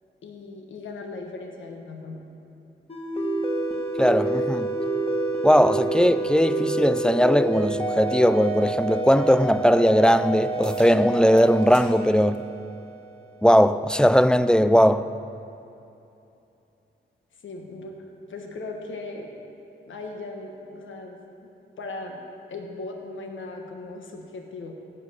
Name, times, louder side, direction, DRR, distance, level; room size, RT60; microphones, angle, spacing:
voice 1, 0.2-2.2 17.4-19.3 19.8-21.3 21.8-22.2 22.5-24.7, left 3 dB, 90° left, 1.3 m, -38 dB
sound 1, 2.9-13.2, right 2 dB, 30° left, 1.7 m, -28 dB
voice 2, 4.0-4.7 5.4-12.4 13.4-15.1, equal, 5° left, 0.4 m, -19 dB
sound 2, 10.6-10.9 11.4-11.9 12.3-12.5 13.6-13.7 18.6-18.7, right 3 dB, 70° right, 2.0 m, -46 dB
16.5 x 5.6 x 6.8 m
cardioid pair, 70°, 19 cm